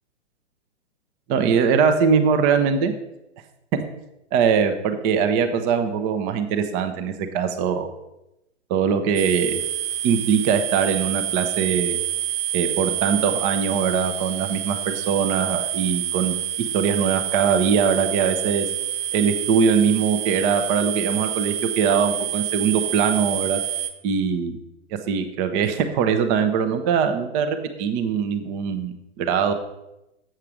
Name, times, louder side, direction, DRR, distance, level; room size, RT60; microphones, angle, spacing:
voice 1, 1.3-2.9 3.7-3.8 4.3-7.9 8.7-9.6 10.0-12.0 12.5-16.3 16.7-18.7 19.1-23.6 24.0-24.6 25.1-29.5, right 6 dB, 20° right, 7 dB, 0.6 m, -22 dB
sound 1, 9.1-23.9, right 12 dB, 50° right, 0.9 m, -28 dB
7.5 x 6.6 x 4.8 m, 0.90 s
figure-of-eight pair, 120°, 36 cm